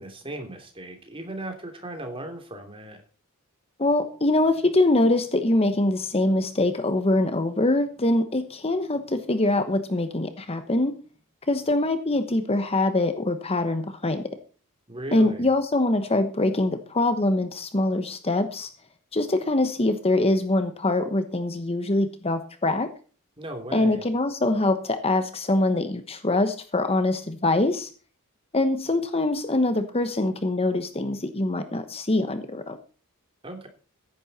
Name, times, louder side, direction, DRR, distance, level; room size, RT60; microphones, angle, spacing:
voice 1, 0.0-3.0 14.9-15.5 23.4-24.0 33.4-33.7, right 1 dB, 25° right, 5 dB, 3.0 m, -37 dB
voice 2, 3.8-10.9 11.5-14.3 15.1-18.7 19.1-22.9 23.7-27.9 28.5-32.8, left 2 dB, 25° left, 9 dB, 1.1 m, -23 dB
15.0 x 11.0 x 4.2 m, 0.37 s
head